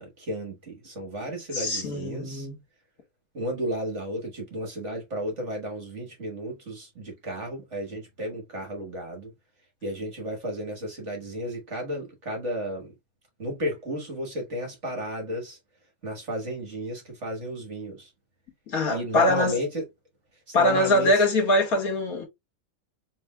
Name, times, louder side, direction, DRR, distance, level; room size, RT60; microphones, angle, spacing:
voice 1, 0.0-2.5 3.3-9.3 9.8-12.9 13.4-15.6 16.0-18.1 18.9-19.8 20.5-21.2, equal, 45° right, 1.6 m, -33 dB
voice 2, 1.5-2.6 18.7-19.6 20.5-22.2, left 1 dB, 55° left, 2.1 m, -23 dB
5.4 x 3.5 x 2.2 m
omnidirectional pair, 1.9 m